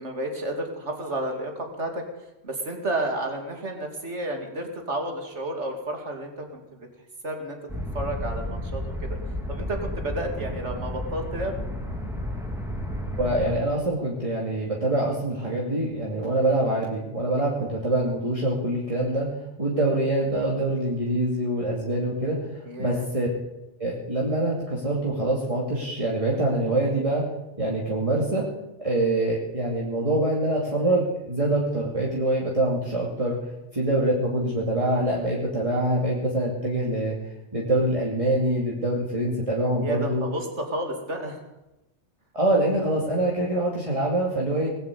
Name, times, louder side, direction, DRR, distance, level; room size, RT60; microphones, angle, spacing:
voice 1, 0.0-2.0 2.4-6.9 7.2-7.6 7.9-9.2 9.5-11.6 22.6-23.0 39.8-41.4, right 1 dB, 75° right, 3 dB, 2.9 m, -31 dB
sound 1, 7.7-13.6, left 1 dB, ahead, 2.5 m, -32 dB
voice 2, 13.2-19.3 19.6-23.3 23.8-27.3 27.6-28.5 28.8-33.4 33.7-37.2 37.5-40.2 42.3-44.7, right 1 dB, 30° right, -4 dB, 2.6 m, -25 dB
20.0 x 8.0 x 8.5 m, 0.97 s
omnidirectional pair, 1.2 m